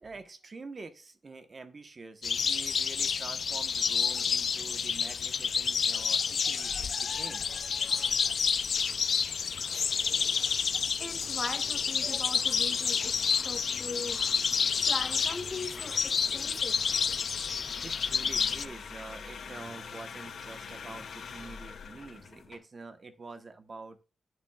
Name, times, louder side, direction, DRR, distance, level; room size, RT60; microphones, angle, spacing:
voice 1, 0.0-7.5 17.8-24.0, right 3 dB, 35° right, 1.0 m, -46 dB
sound 1, 2.2-18.7, left 6 dB, 55° left, 0.4 m, -29 dB
sound 2, 7.0-22.6, left 5 dB, 80° left, 1.9 m, -47 dB
voice 2, 11.0-13.1 13.4-14.2 14.9-16.8, left 3 dB, 20° left, 1.9 m, -39 dB
10.5 x 7.4 x 2.3 m
wide cardioid pair, 155°, 0 cm